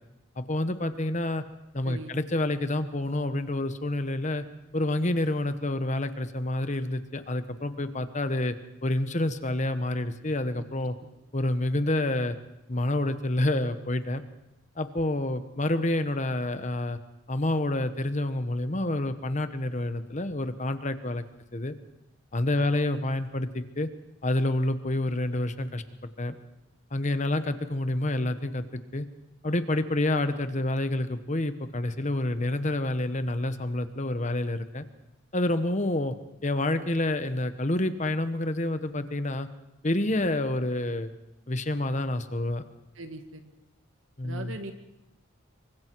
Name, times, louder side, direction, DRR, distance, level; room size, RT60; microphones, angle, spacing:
voice 1, 0.4-1.4 1.7-4.4 4.7-8.5 8.8-10.9 11.3-12.4 12.7-14.2 14.8-17.0 17.3-21.2 21.5-21.7 22.3-23.9 24.2-25.8 26.2-26.3 26.9-28.6 28.9-29.1 29.4-34.8 35.3-36.1 36.4-39.5 39.8-41.1 41.5-42.6 44.2-44.6, left 1 dB, 35° left, 10 dB, 1.1 m, -28 dB
voice 2, 43.0-43.4 44.2-44.7, right 2 dB, 70° right, 6 dB, 2.1 m, -40 dB
26.5 x 24.0 x 4.7 m, 0.90 s
head